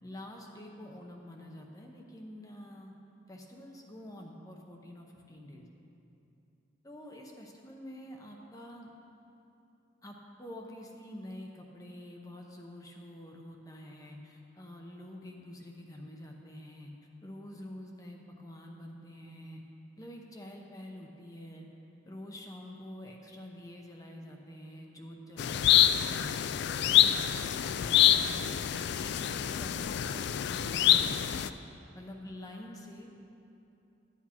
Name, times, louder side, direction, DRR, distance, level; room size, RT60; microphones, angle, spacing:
voice 1, 0.0-2.9 3.3-5.7 6.8-8.9 10.0-16.9 17.2-19.6 20.0-21.7 22.0-26.3 26.8-28.6 29.0-31.5 31.9-33.1, left 1 dB, 20° left, 1 dB, 0.7 m, -47 dB
sound 1, 25.4-31.5, left 11 dB, 60° left, 0.3 m, -26 dB
11.5 x 8.4 x 4.4 m, 2.9 s
head